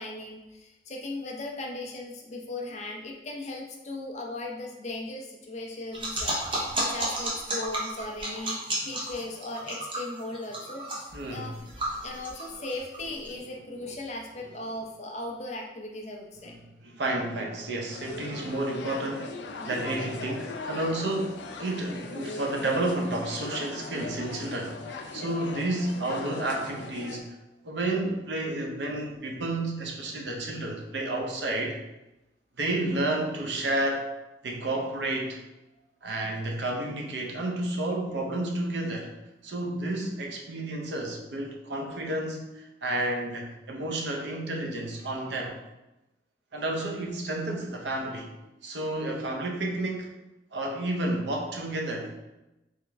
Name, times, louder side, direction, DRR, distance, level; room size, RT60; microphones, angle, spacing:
voice 1, 0.0-11.5 12.0-16.5, left 2 dB, 40° left, 0 dB, 0.6 m, -38 dB
sound 1, 5.9-13.3, right 1 dB, 30° right, 0.8 m, -32 dB
voice 2, 11.1-11.6 13.4-13.5 16.4-16.5 16.8-19.3 19.7-27.3 27.6-31.8 32.6-34.1 34.4-35.4 36.0-39.1 39.4-45.6 46.5-48.3 48.6-50.1 50.5-52.1, right 1 dB, 80° right, 1 dB, 0.7 m, -31 dB
sound 2, 17.9-27.2, left 3 dB, 85° left, 0.4 m, -39 dB
3.5 x 3.1 x 3.4 m, 0.99 s
head